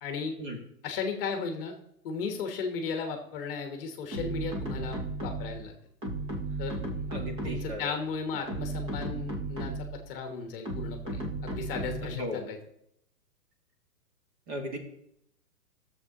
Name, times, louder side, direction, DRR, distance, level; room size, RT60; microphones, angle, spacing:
voice 1, 0.0-0.3 0.8-1.7 2.0-5.7 6.6-6.8 7.4-12.6, left 5 dB, 35° left, 5 dB, 1.1 m, -35 dB
sound 1, 4.1-5.6 6.0-7.8 8.3-10.0 10.6-12.2, right 2 dB, 10° right, 0.7 m, -35 dB
sound 2, 4.6-10.8, right 1 dB, 70° right, 3.4 m, -51 dB
voice 2, 7.1-7.9 12.0-12.5 14.5-14.8, left 1 dB, 30° right, 2 dB, 1.7 m, -36 dB
13.0 x 7.3 x 2.8 m, 0.76 s
hypercardioid pair, 150°, 49 cm